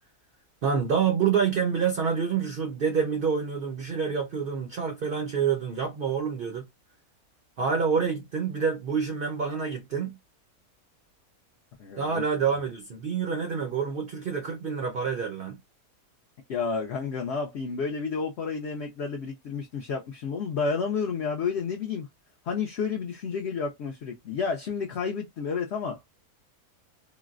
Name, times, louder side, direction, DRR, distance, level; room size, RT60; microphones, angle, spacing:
voice 1, 0.6-6.7 7.6-10.2 12.0-15.6, right 6 dB, 65° right, 0.5 m, -27 dB
voice 2, 11.8-12.2 16.5-22.1 22.4-26.0, left 5 dB, 65° left, 0.7 m, -30 dB
3.9 x 2.0 x 2.4 m
omnidirectional pair, 1.5 m